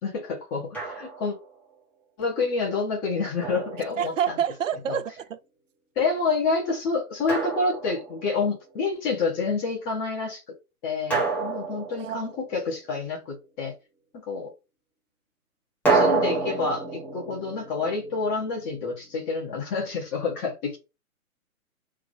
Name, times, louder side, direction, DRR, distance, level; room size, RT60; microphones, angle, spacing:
voice 1, 0.0-1.3 2.2-4.4 4.9-5.0 5.9-10.4 10.8-13.7 14.3-14.5 15.9-20.8, left 4 dB, 20° left, 1.4 m, -28 dB
Drum, 0.7-1.4 3.4-4.5 7.3-8.4 11.1-12.8 15.9-18.8, right 4 dB, 5° left, 1.1 m, -28 dB
voice 2, 4.0-5.4 12.0-12.2, right 9 dB, 60° right, 0.7 m, -28 dB
3.7 x 2.9 x 4.8 m
hypercardioid pair, 140°, 43 cm